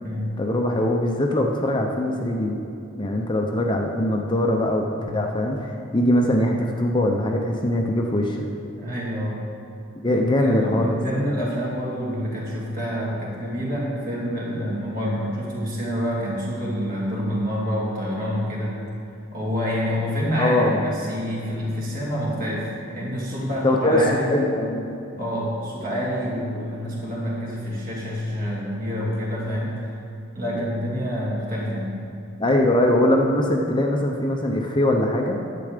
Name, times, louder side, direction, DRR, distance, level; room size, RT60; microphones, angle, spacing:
voice 1, 0.4-2.6 3.0-4.9 5.1-8.5 10.0-11.0 20.4-20.8 23.6-24.0 24.3-25.0 30.5-30.6 32.4-35.4, left 1 dB, 25° left, 1 dB, 0.7 m, -22 dB
voice 2, 8.8-9.4 10.4-18.8 19.3-24.3 25.1-29.9 30.3-32.0, equal, 45° right, -5 dB, 2.6 m, -27 dB
10.5 x 7.7 x 5.1 m, 2.6 s
head